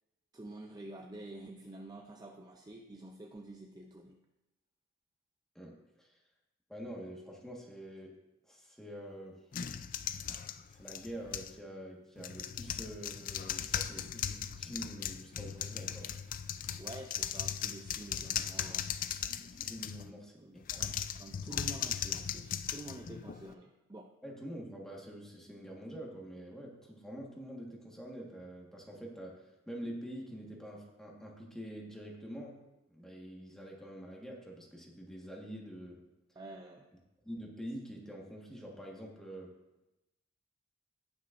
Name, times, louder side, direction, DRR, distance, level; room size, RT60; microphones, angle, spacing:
voice 1, 0.3-4.2 16.8-18.9 20.0-24.1 36.4-36.9, right 2 dB, 20° right, 3 dB, 0.4 m, -48 dB
voice 2, 5.5-6.2 6.7-9.4 10.3-10.4 10.7-16.2 19.5-20.9 24.2-36.0 37.2-39.6, equal, ahead, -2 dB, 1.4 m, -46 dB
sound 1, 9.5-11.6 12.2-20.1 20.6-23.5, left 9 dB, 40° left, 0.4 m, -38 dB
18.0 x 6.1 x 2.5 m, 0.96 s
head